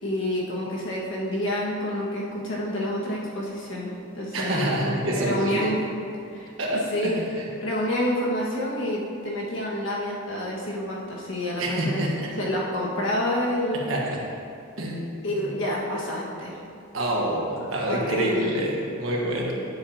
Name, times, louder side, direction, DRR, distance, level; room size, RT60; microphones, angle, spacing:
voice 1, 0.0-5.8 6.3-7.2 7.6-12.1 12.4-13.8 15.2-16.6 17.5-18.6, left 1 dB, 70° left, -5 dB, 1.7 m, -28 dB
voice 2, 4.3-5.7 6.6-7.4 11.6-12.3 13.7-14.2 14.8-15.3 16.9-19.5, right 1 dB, 85° right, -2 dB, 1.4 m, -27 dB
9.3 x 7.5 x 2.9 m, 2.5 s
head